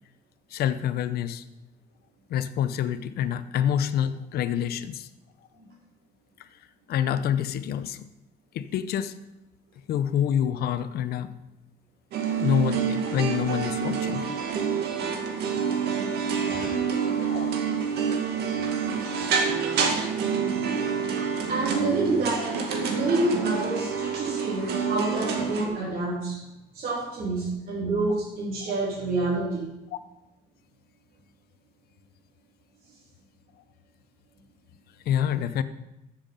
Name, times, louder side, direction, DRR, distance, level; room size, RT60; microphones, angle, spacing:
voice 1, 0.5-1.4 2.3-5.1 6.4-6.5 6.9-8.1 8.5-9.1 9.9-11.3 12.4-14.4 17.3-17.5 18.5-19.7 29.9-30.0 35.1-35.6, left 9 dB, 65° left, 12 dB, 0.8 m, -27 dB
sound 1, 12.1-25.7, right 6 dB, 75° right, 2.0 m, -27 dB
voice 2, 16.4-16.8 21.5-22.5 22.9-26.4 26.7-29.7, right 2 dB, 60° right, -7 dB, 3.6 m, -28 dB
14.0 x 7.3 x 5.3 m, 0.93 s
cardioid pair, 110°, 17 cm